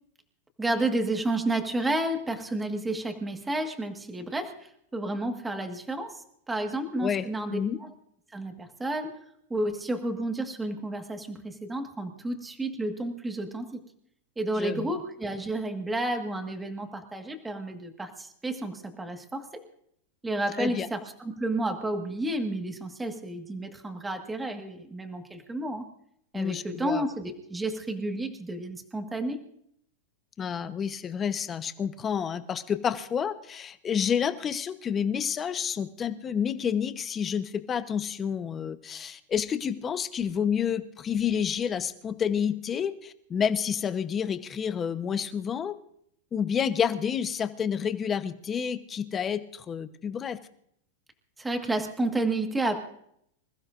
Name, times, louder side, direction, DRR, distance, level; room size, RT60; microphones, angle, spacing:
voice 1, 0.6-4.5 4.9-7.9 8.3-9.1 9.5-13.8 14.4-19.6 20.2-25.9 26.3-29.4 51.4-52.7, right 2 dB, 10° right, 5 dB, 1.7 m, -31 dB
voice 2, 14.6-14.9 20.6-20.9 26.3-27.0 30.4-45.7 46.3-50.4, left 7 dB, 20° left, 10 dB, 0.9 m, -29 dB
26.0 x 15.0 x 2.6 m, 0.71 s
supercardioid pair, 150°, 0 cm